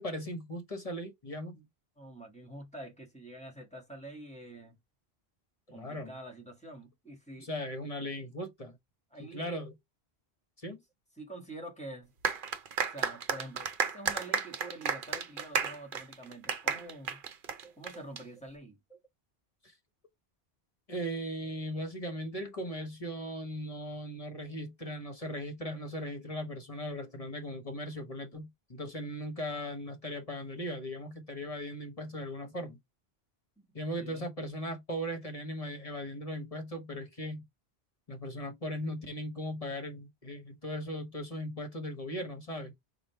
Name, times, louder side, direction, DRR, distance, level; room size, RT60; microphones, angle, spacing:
voice 1, 0.0-1.6 5.7-6.1 7.4-8.8 9.2-9.7 10.6-10.8 16.7-16.8 17.6-17.7 19.6-19.7 20.9-32.8 33.7-37.4 38.1-42.7, equal, 35° left, 1.0 m, -38 dB
voice 2, 2.0-4.8 5.7-7.5 9.1-9.6 11.2-12.1 12.9-17.2 17.8-18.8 33.6-33.7 34.0-34.3, right 1 dB, 5° left, 1.4 m, -46 dB
sound 1, 12.2-18.2, right 6 dB, 60° right, 0.8 m, -33 dB
4.9 x 2.3 x 4.4 m
omnidirectional pair, 1.1 m